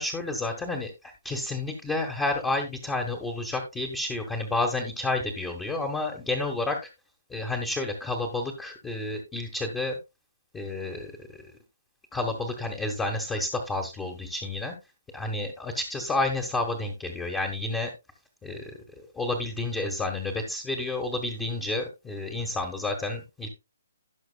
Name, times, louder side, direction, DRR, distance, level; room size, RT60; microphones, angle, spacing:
voice 1, 0.0-6.8 7.3-10.0 10.5-11.3 12.1-14.7 15.1-17.9 18.4-23.5, left 2 dB, 10° left, 3 dB, 1.2 m, -30 dB
16.5 x 5.9 x 2.2 m, 0.25 s
hypercardioid pair, 160°, 0 cm